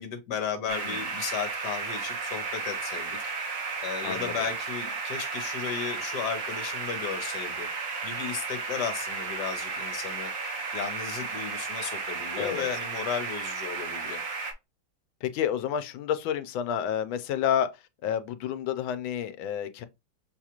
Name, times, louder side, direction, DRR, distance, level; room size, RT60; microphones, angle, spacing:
voice 1, 0.0-3.2 3.8-7.7 8.0-10.3 10.7-14.2, left 7 dB, 60° left, 1.5 m, -34 dB
sound 1, 0.7-14.5, right 4 dB, 50° right, 1.1 m, -34 dB
voice 2, 4.0-4.4 12.4-12.7 15.2-17.7 18.0-19.8, left 9 dB, 90° left, 1.4 m, -30 dB
6.4 x 2.4 x 2.8 m
omnidirectional pair, 2.1 m